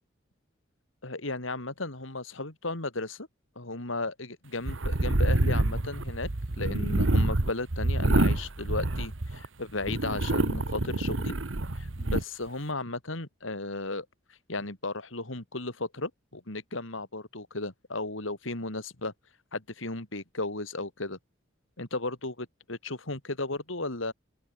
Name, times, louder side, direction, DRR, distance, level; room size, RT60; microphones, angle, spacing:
voice 1, 1.0-3.3 3.6-6.3 6.6-11.4 11.7-14.1 14.5-19.1 19.5-21.2 21.8-24.1, left 2 dB, 80° left, 3.6 m, -35 dB
sound 1, 4.7-9.5 9.8-12.2, right 2 dB, 75° right, 1.4 m, -27 dB
open air
head